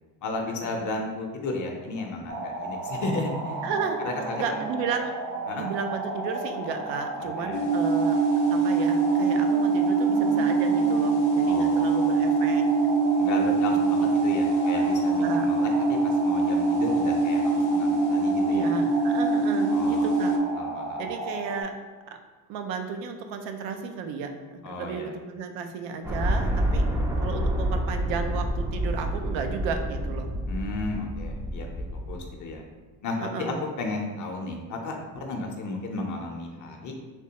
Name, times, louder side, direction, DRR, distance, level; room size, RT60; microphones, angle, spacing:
voice 1, 0.2-3.6 4.0-4.6 5.5-5.7 7.4-7.6 11.4-12.1 13.2-18.8 19.7-20.1 20.6-21.0 24.6-25.1 30.5-32.7 33.0-36.9, left 2 dB, 45° left, 2 dB, 0.6 m, -34 dB
sound 1, 2.3-21.6, right 1 dB, 40° right, 0.7 m, -34 dB
voice 2, 3.6-4.0 4.3-5.1 5.5-8.2 8.5-12.6 13.9-14.1 15.1-15.5 18.5-20.3 21.0-21.7 22.1-22.2 22.5-26.9 27.2-30.3 33.2-33.6, right 5 dB, 85° right, 6 dB, 0.6 m, -33 dB
sound 2, 7.5-20.4, right 4 dB, 90° left, 0.7 m, -23 dB
sound 3, 26.0-32.3, equal, 5° right, 0.4 m, -28 dB
3.4 x 3.1 x 2.8 m, 1.3 s
cardioid pair, 100°, 43 cm